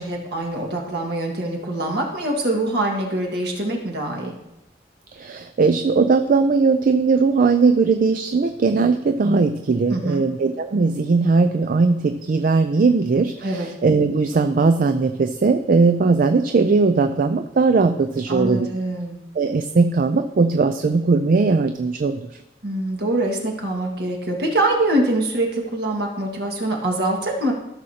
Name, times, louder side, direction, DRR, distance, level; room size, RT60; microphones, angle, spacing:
voice 1, 0.0-4.4 9.9-10.2 13.4-13.7 18.3-19.2 22.6-27.5, right 1 dB, 65° right, 0 dB, 1.7 m, -24 dB
voice 2, 5.1-18.7 19.4-22.3, right 4 dB, 50° right, 8 dB, 0.4 m, -19 dB
15.0 x 6.4 x 2.8 m, 0.95 s
head